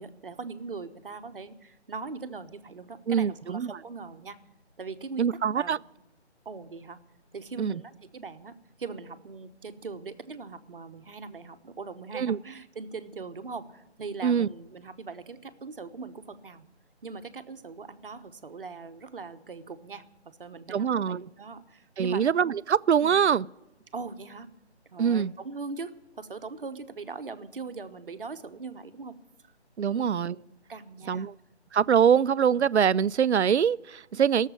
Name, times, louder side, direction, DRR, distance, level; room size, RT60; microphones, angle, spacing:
voice 1, 0.0-4.4 4.8-5.8 6.4-7.0 7.3-8.5 8.8-16.7 17.0-22.2 23.0-23.2 23.9-24.5 24.9-29.1 29.8-30.4 30.7-31.3, right 4 dB, 50° right, 1.1 m, -41 dB
voice 2, 3.1-3.7 5.2-5.8 7.6-7.8 12.1-12.4 14.2-14.5 20.7-21.2 22.0-23.5 25.0-25.3 29.8-30.4 31.1-31.3 31.7-34.5, right 7 dB, 75° right, 0.5 m, -24 dB
17.5 x 7.4 x 9.9 m
figure-of-eight pair, 155°, 34 cm